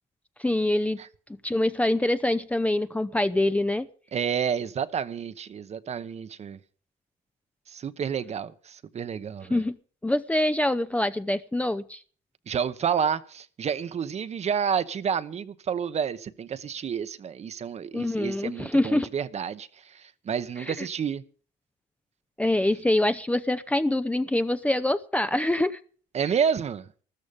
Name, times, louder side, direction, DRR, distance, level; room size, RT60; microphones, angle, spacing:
voice 1, 0.4-1.0 1.4-3.9 9.5-9.8 10.0-12.0 17.9-19.1 20.6-20.9 22.4-25.8, left 1 dB, 10° left, 0.6 m, -25 dB
voice 2, 4.1-6.6 7.7-9.6 12.5-21.2 26.1-26.8, right 7 dB, 40° right, 0.9 m, -30 dB
14.0 x 13.5 x 5.3 m
cardioid pair, 110°, 17 cm